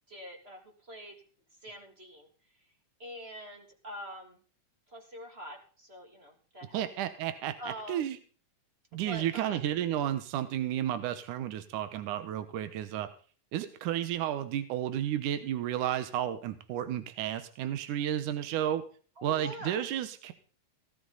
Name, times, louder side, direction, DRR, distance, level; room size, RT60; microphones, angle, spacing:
voice 1, 0.1-1.2 1.6-2.3 3.0-4.4 4.9-6.8 7.6-8.1 8.9-9.6 19.2-19.8, equal, 20° right, 2 dB, 2.9 m, -45 dB
voice 2, 6.7-7.5 7.9-8.2 8.9-13.1 13.5-18.8 19.2-20.3, right 11 dB, 80° right, 10 dB, 2.6 m, -32 dB
18.0 x 12.5 x 4.0 m, 0.41 s
omnidirectional pair, 3.6 m